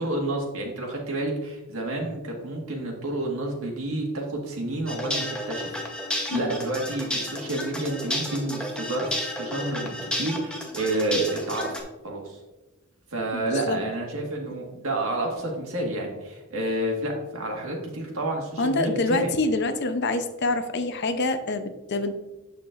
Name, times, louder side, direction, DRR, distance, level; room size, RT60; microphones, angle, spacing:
voice 1, 0.0-5.8 6.0-12.4 13.1-19.3, right 1 dB, 70° right, 0 dB, 1.7 m, -29 dB
sound 1, 4.9-11.8, left 1 dB, 5° left, 0.9 m, -32 dB
voice 2, 13.3-13.8 18.6-22.1, left 2 dB, 50° left, 8 dB, 0.6 m, -26 dB
8.6 x 6.7 x 2.5 m, 1.1 s
head